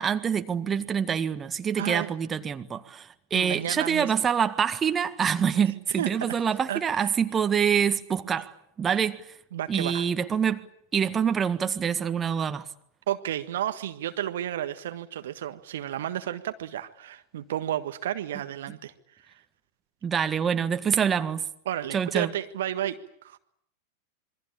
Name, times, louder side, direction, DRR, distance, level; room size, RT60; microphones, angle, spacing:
voice 1, 0.0-9.3 9.7-10.6 10.9-12.7 20.0-21.5 21.9-22.3, right 7 dB, 20° right, 1.6 m, -26 dB
voice 2, 1.7-2.1 3.3-4.1 6.0-6.3 6.7-7.1 9.5-10.0 13.1-18.9 19.2-19.3 21.6-23.4, right 11 dB, 60° right, 1.5 m, -32 dB
27.5 x 23.5 x 8.7 m
figure-of-eight pair, 90°, 0 cm